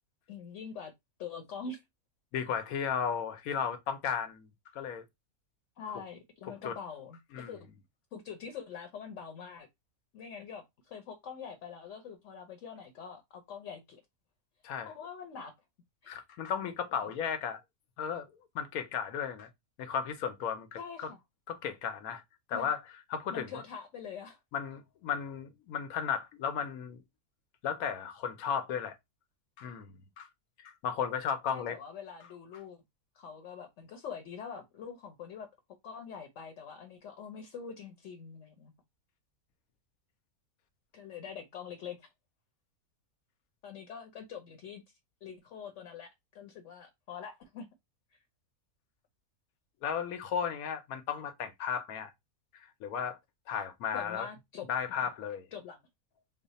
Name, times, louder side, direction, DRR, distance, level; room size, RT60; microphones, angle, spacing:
voice 1, 0.3-0.9 1.2-1.8 5.8-7.7 8.1-9.7 10.1-14.0 14.8-15.5 16.0-16.2 16.9-17.1 20.8-21.2 22.5-22.7 23.3-24.4 31.5-32.8 33.1-35.5 35.8-38.7 40.9-42.1 43.6-44.8 45.2-47.7 53.9-54.7 55.0-55.1 55.5-55.8, left 6 dB, 65° left, 0.9 m, -44 dB
voice 2, 2.3-4.5 4.7-5.0 6.6-6.8 7.3-7.5 14.6-14.9 16.1-17.6 18.0-18.3 18.5-19.5 19.8-21.1 21.5-22.2 22.5-22.8 23.1-23.6 24.5-27.0 27.6-29.0 29.6-30.3 30.6-31.8 49.8-52.1 52.6-53.2 53.5-54.3 54.7-55.5, left 7 dB, 85° left, 1.1 m, -34 dB
3.2 x 2.1 x 4.0 m
omnidirectional pair, 1.5 m